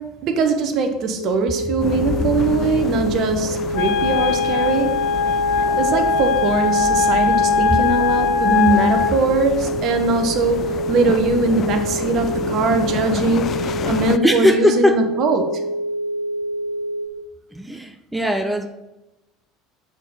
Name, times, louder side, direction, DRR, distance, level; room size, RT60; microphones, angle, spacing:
voice 1, 0.0-5.0 5.6-15.6, right 4 dB, 50° right, 7 dB, 0.9 m, -21 dB
sound 1, 1.2-17.1, right 1 dB, 85° left, 0.9 m, -26 dB
sound 2, 1.8-14.2, left 8 dB, 40° left, 0.3 m, -29 dB
Wind instrument woodwind instrument, 3.7-9.1, left 7 dB, 60° left, 0.7 m, -20 dB
voice 2, 14.2-15.0 17.5-18.7, equal, 5° right, 7 dB, 0.5 m, -19 dB
7.9 x 3.8 x 5.4 m, 0.99 s
figure-of-eight pair, 65°, 0 cm